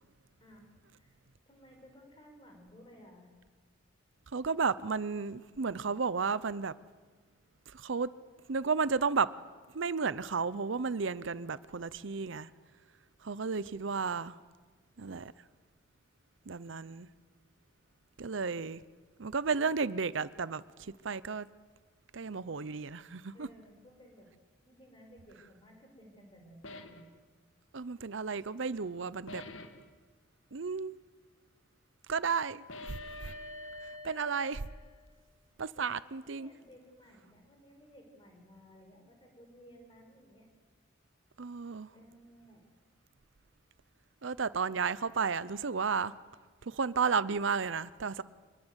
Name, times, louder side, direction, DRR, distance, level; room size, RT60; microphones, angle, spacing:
voice 1, 0.4-0.7 1.0-3.3 23.3-24.3 24.6-27.0 32.2-32.4 35.7-35.9 36.3-40.5 41.9-42.7, equal, 25° left, 5.6 m, -57 dB
voice 2, 4.3-6.7 7.7-8.1 8.5-9.3 9.7-12.5 13.2-14.4 15.0-15.3 16.5-17.1 18.2-18.8 19.2-21.5 22.1-23.5 27.7-29.4 30.5-31.0 32.1-33.0 33.8-34.7 35.6-36.5 41.4-41.9 44.2-46.1 46.6-48.2, right 5 dB, 75° right, 0.7 m, -33 dB
sound 1, 26.6-27.1 29.3-29.9 32.7-35.2, left 2 dB, 80° left, 1.9 m, -46 dB
26.0 x 21.0 x 8.1 m
head